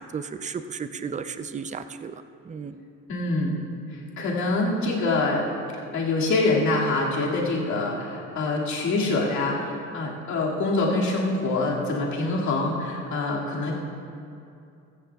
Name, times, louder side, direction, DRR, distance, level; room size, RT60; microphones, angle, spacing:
voice 1, 0.0-2.1 2.5-2.8, right 6 dB, 25° right, 10 dB, 0.5 m, -34 dB
voice 2, 3.1-3.5 4.2-5.4 5.9-13.7, left 2 dB, 70° left, -4 dB, 2.3 m, -25 dB
15.0 x 14.5 x 2.4 m, 2.6 s
cardioid pair, 90°, 30 cm